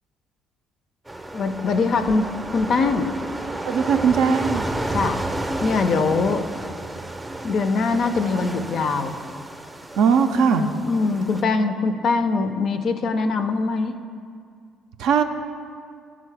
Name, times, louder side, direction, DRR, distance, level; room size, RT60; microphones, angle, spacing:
sound 1, 1.1-11.4, right 1 dB, 15° right, 0.5 m, -31 dB
voice 1, 1.3-3.1 4.9-5.2 5.6-6.4 7.4-9.1 10.5-14.0, left 4 dB, 60° left, 8 dB, 0.3 m, -22 dB
voice 2, 3.6-4.7 8.4-8.5 10.0-10.7 15.0-15.2, right 6 dB, 70° right, 6 dB, 0.3 m, -19 dB
10.0 x 3.7 x 3.3 m, 2.2 s
hypercardioid pair, 55°, 0 cm